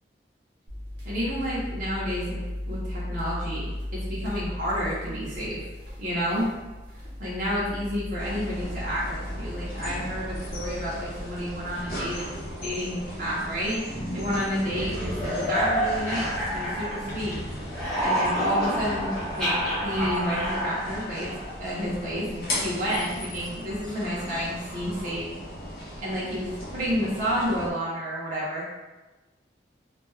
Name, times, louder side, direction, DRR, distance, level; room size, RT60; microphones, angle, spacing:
sound 1, 0.7-12.3, left 1 dB, 75° right, 0.8 m, -37 dB
voice 1, 1.0-2.4 2.7-5.6 6.0-6.5 7.2-13.8 14.1-17.4 18.0-19.5 19.8-21.3 21.6-25.3 26.0-28.7, equal, 45° right, -8 dB, 0.6 m, -30 dB
sound 2, 8.2-27.7, equal, 55° left, 0.5 m, -37 dB
sound 3, 13.8-17.3 17.6-21.6, equal, 5° left, 0.8 m, -29 dB
2.2 x 2.2 x 3.0 m, 1.1 s
head